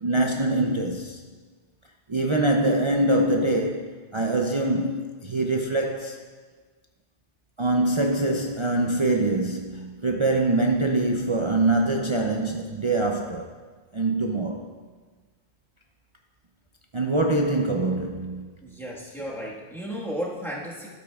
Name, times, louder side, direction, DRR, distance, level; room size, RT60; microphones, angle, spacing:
voice 1, 0.0-1.2 2.1-6.2 7.6-13.5 13.9-14.7 16.9-18.5, right 2 dB, 50° right, 1 dB, 0.3 m, -24 dB
voice 2, 18.6-20.9, equal, ahead, -5 dB, 1.3 m, -34 dB
12.0 x 8.5 x 2.3 m, 1.4 s
omnidirectional pair, 1.2 m